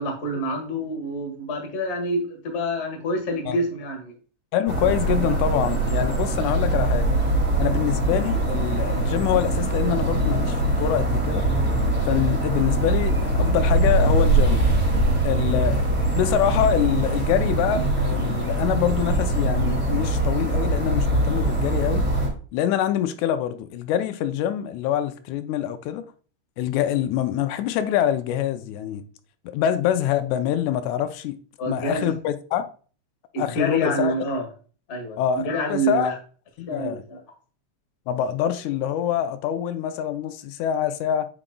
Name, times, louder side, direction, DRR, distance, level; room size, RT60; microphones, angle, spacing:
voice 1, 0.0-4.1 31.6-32.1 33.3-34.5 34.9-36.1 36.7-37.2, equal, 40° left, 1.0 m, -27 dB
voice 2, 4.5-7.1 7.6-11.4 12.0-14.6 15.2-22.1 22.5-26.1 26.6-29.0 29.5-31.4 31.7-32.7 33.4-34.1 35.2-36.1 36.6-37.0 38.1-41.3, left 10 dB, 85° left, 1.9 m, -25 dB
sound 1, 4.7-22.3, right 2 dB, 5° right, 1.6 m, -22 dB
sound 2, 14.8-18.5, right 7 dB, 70° right, 1.6 m, -42 dB
8.7 x 4.9 x 2.2 m
omnidirectional pair, 3.4 m